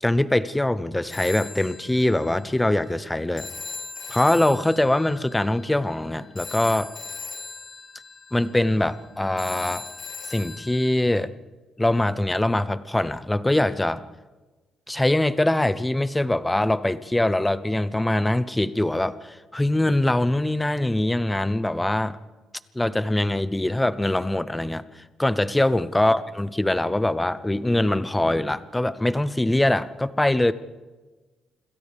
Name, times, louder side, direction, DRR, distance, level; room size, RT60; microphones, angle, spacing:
voice 1, 0.0-3.5 4.1-6.9 8.3-9.8 10.3-11.3 11.8-14.0 14.9-22.2 22.7-30.5, left 1 dB, 10° left, 14 dB, 0.6 m, -23 dB
Telephone, 1.1-10.9, left 4 dB, 35° left, 5.0 m, -39 dB
28.0 x 26.5 x 3.5 m, 1.2 s
cardioid pair, 160°, 0 cm